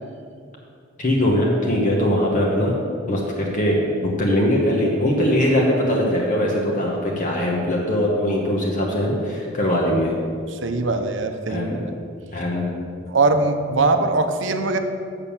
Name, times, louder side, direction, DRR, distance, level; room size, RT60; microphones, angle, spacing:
voice 1, 1.0-2.7 3.1-10.1 11.5-11.8 12.3-12.7, left 1 dB, 40° left, -2 dB, 1.1 m, -21 dB
voice 2, 10.5-11.9 13.1-14.8, right 3 dB, 65° right, 7 dB, 0.7 m, -21 dB
7.0 x 6.7 x 7.1 m, 2.3 s
head